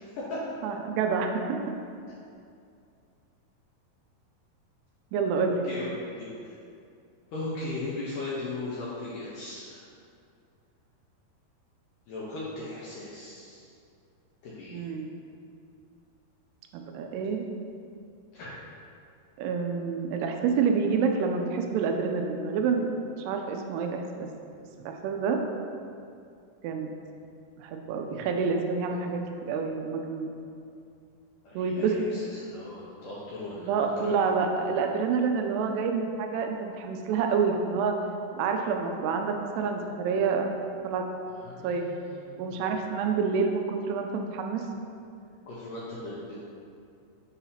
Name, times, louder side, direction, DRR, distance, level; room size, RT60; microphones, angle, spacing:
voice 1, 0.6-1.5 5.1-5.6 14.7-15.1 16.7-17.5 19.4-22.9 23.2-24.3 24.9-25.4 26.6-26.9 27.6-30.3 31.6-32.0 33.7-37.9 38.3-40.5 40.8-41.0 41.6-41.9 42.4-44.6, right 5 dB, 85° right, 4 dB, 2.6 m, -28 dB
voice 2, 5.6-6.5 7.3-9.8 12.1-13.7 14.4-14.9 18.3-18.5 31.4-34.3 41.3-42.8 45.5-46.5, left 2 dB, 85° left, -7 dB, 1.9 m, -38 dB
7.0 x 2.8 x 5.7 m, 2.4 s
omnidirectional pair, 4.7 m